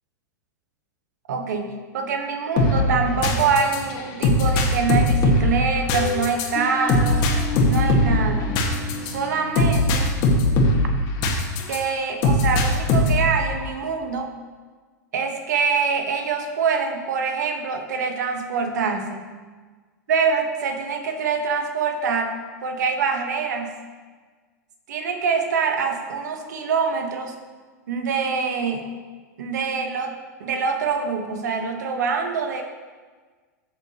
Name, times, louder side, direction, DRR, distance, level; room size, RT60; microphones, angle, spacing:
voice 1, 1.3-7.3 7.7-8.6 9.0-10.1 11.7-14.3 15.1-19.3 20.1-22.3 22.6-23.7 24.9-27.4 27.9-28.8 29.4-30.1 30.4-32.6, right 5 dB, 65° right, 5 dB, 1.3 m, -25 dB
sound 1, 2.6-11.8 12.2-13.3, left 2 dB, 45° left, 1.8 m, -20 dB
13.5 x 6.4 x 3.0 m, 1.4 s
hypercardioid pair, 100°, 10 cm